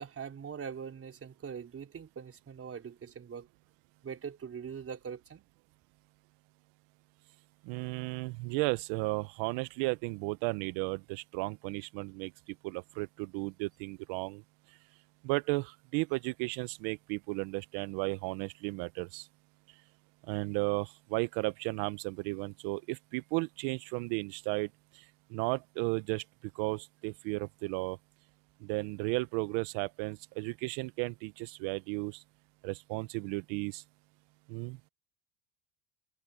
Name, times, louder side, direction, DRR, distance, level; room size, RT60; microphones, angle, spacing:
voice 1, 0.0-3.5 4.0-5.5, right 7 dB, 30° right, 4.8 m, -42 dB
voice 2, 7.6-14.4 15.2-19.3 20.3-24.7 24.9-25.0 25.3-26.2 26.5-28.0 28.6-32.2 32.6-33.8 34.5-34.9, right 24 dB, 65° right, 1.1 m, -34 dB
open air
supercardioid pair, 115°, 48 cm